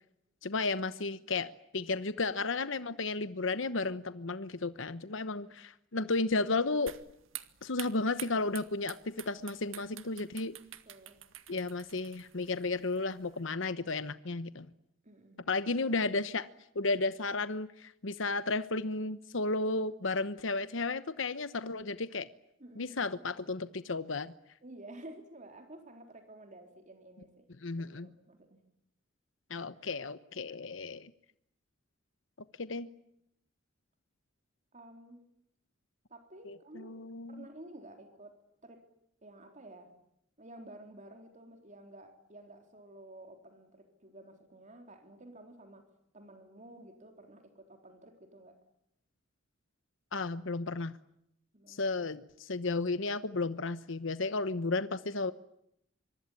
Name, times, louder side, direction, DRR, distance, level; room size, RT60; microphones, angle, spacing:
voice 1, 0.4-6.9 7.6-10.6 11.5-14.7 15.5-16.5 16.7-22.3 22.8-24.3 27.6-28.1 29.5-31.1 32.6-32.9 36.5-37.4 50.1-50.9 51.7-55.3, left 3 dB, 70° left, 13 dB, 1.0 m, -33 dB
sound 1, 6.9-13.4, right 12 dB, 80° right, 1.9 m, -48 dB
voice 2, 10.9-11.2 15.0-15.6 22.6-23.2 24.6-27.5 27.8-28.6 34.7-35.3 36.1-37.0 37.3-38.4 38.6-38.8 39.2-39.9 40.4-45.9 46.1-48.6 51.5-51.9, right 1 dB, 40° right, 5 dB, 3.8 m, -52 dB
25.5 x 24.0 x 9.9 m, 0.76 s
head